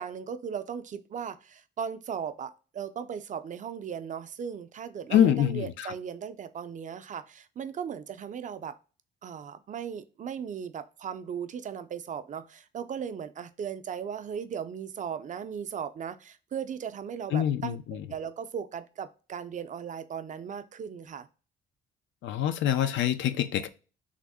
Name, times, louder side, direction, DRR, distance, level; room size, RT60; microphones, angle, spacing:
voice 1, 0.0-8.8 9.2-21.3, right 7 dB, 40° right, 0.4 m, -37 dB
voice 2, 5.1-5.9 17.3-18.0 22.2-23.7, left 10 dB, 75° left, 0.4 m, -25 dB
3.5 x 2.0 x 3.5 m
cardioid pair, 90°, 20 cm